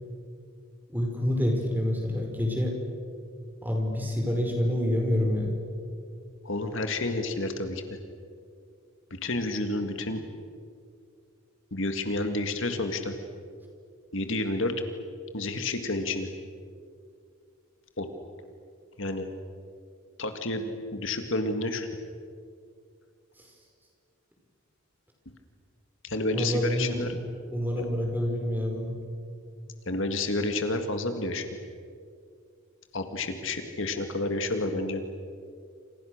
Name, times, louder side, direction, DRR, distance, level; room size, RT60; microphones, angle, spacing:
voice 1, 0.9-2.7 3.6-5.5 23.4-23.5 26.3-27.1 27.5-28.9, equal, 10° right, 1 dB, 5.4 m, -27 dB
voice 2, 6.4-8.0 9.1-10.2 11.7-13.2 14.1-14.7 15.3-16.3 18.0-18.1 19.0-19.3 20.2-21.9 26.0-27.1 27.8-27.9 29.9-31.5 32.9-35.0, left 2 dB, 60° left, 6 dB, 2.0 m, -30 dB
28.5 x 28.0 x 6.6 m, 2.3 s
head